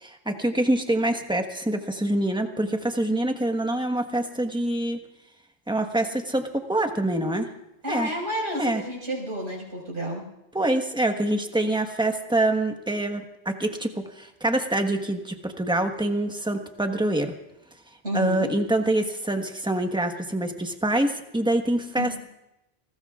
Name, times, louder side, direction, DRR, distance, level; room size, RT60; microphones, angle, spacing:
voice 1, 0.0-5.0 5.7-7.5 7.9-8.1 8.6-8.8 10.5-17.3 18.1-22.2, right 1 dB, 5° right, 5 dB, 1.3 m, -25 dB
voice 2, 7.8-10.2 18.0-18.5 21.9-22.2, equal, 85° right, -3 dB, 5.7 m, -30 dB
28.5 x 20.0 x 2.5 m, 0.90 s
omnidirectional pair, 1.1 m